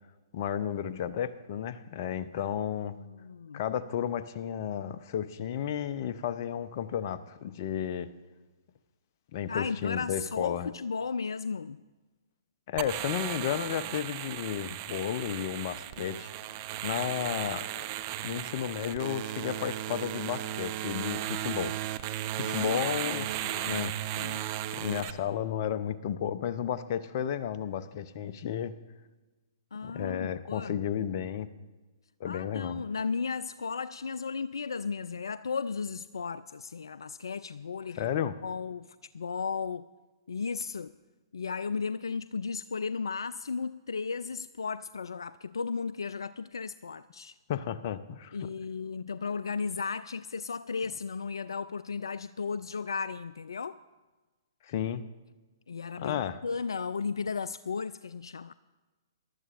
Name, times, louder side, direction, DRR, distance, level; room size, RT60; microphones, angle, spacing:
voice 1, 0.3-2.9 3.5-8.1 9.3-10.7 12.7-16.3 16.8-17.9 18.2-21.7 22.4-23.3 23.6-24.0 24.7-28.7 29.8-31.5 32.2-32.8 38.0-38.4 47.5-48.4 54.6-55.0 56.0-56.4, left 9 dB, 45° left, 0.7 m, -33 dB
voice 2, 2.9-3.6 9.5-11.8 22.4-24.5 29.7-30.8 32.2-38.1 38.4-39.9 40.3-41.0 41.3-47.3 48.3-53.8 55.7-58.5, left 5 dB, 75° left, 0.3 m, -35 dB
sound 1, 12.8-25.1, right 13 dB, 40° right, 0.7 m, -35 dB
21.5 x 12.0 x 2.5 m
figure-of-eight pair, 125°, 2 cm